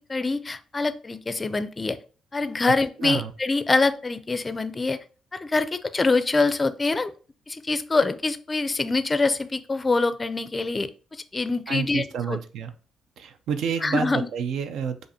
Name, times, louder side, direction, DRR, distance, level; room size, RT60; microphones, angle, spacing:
voice 1, 0.1-2.0 2.3-5.0 5.3-7.1 7.5-12.4 13.8-14.3, left 3 dB, 25° left, 12 dB, 0.4 m, -25 dB
voice 2, 3.0-3.3 11.7-12.7 13.2-15.1, right 7 dB, 75° right, 9 dB, 0.4 m, -29 dB
5.0 x 2.4 x 2.7 m, 0.37 s
cardioid pair, 90°, 0 cm